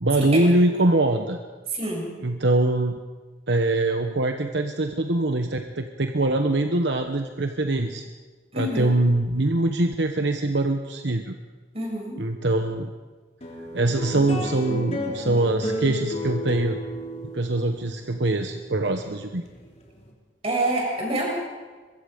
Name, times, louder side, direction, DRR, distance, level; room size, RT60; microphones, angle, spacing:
voice 1, 0.0-1.4 2.2-3.0 3.5-8.0 8.6-11.3 12.2-12.9 13.7-16.8 17.3-19.4, right 2 dB, 70° right, 5 dB, 1.1 m, -23 dB
voice 2, 1.7-2.1 8.5-9.0 11.7-12.2 20.4-21.3, right 1 dB, 35° right, -1 dB, 6.9 m, -27 dB
sound 1, 13.4-20.1, equal, 35° left, 3.5 m, -32 dB
23.0 x 22.5 x 5.2 m, 1.4 s
head